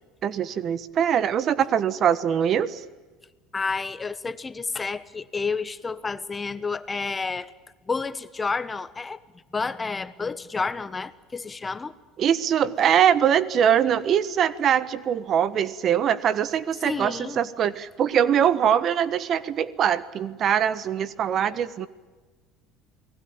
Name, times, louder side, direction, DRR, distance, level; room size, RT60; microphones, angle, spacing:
voice 1, 0.2-2.8 12.2-21.9, right 9 dB, 50° right, 16 dB, 1.3 m, -22 dB
voice 2, 3.5-7.5 7.9-9.2 9.5-11.9 16.8-17.5, left 4 dB, 20° left, 14 dB, 1.3 m, -30 dB
29.0 x 19.5 x 8.8 m, 1.3 s
supercardioid pair, 85°, 0 cm